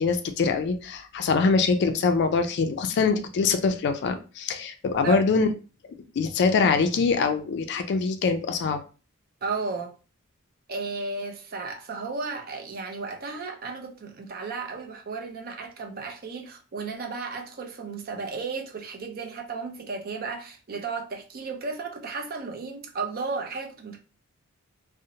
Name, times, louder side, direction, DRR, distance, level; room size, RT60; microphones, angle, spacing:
voice 1, 0.0-5.5 6.2-8.8, left 4 dB, 55° left, 0.3 m, -23 dB
voice 2, 9.4-9.9 10.7-24.0, right 4 dB, 45° right, 0.5 m, -34 dB
2.6 x 2.0 x 2.7 m
head